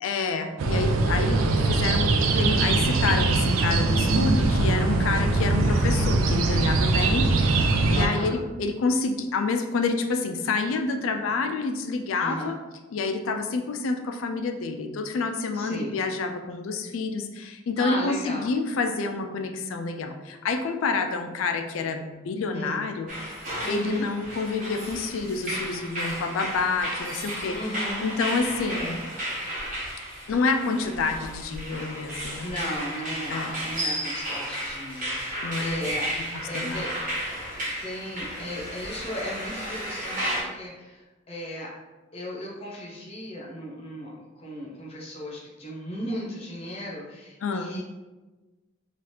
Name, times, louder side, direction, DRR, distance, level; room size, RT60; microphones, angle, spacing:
voice 1, 0.0-12.6 12.9-23.1 23.7-27.6 28.0-29.0 30.3-32.5 33.3-33.5 35.4-35.9 36.2-36.3 36.5-36.9 47.4-47.8, left 4 dB, 85° left, 6 dB, 0.4 m, -28 dB
sound 1, 0.6-8.1, right 3 dB, 85° right, 0.3 m, -22 dB
voice 2, 7.9-8.4 12.2-12.5 15.5-15.9 17.8-18.5 22.5-22.8 23.6-24.0 27.5-28.0 32.4-36.1 36.5-36.9 37.8-41.7 42.1-47.8, equal, 30° left, -3 dB, 0.7 m, -36 dB
sound 2, 23.1-40.4, equal, 40° right, 1.0 m, -33 dB
2.8 x 2.4 x 3.2 m, 1.2 s
head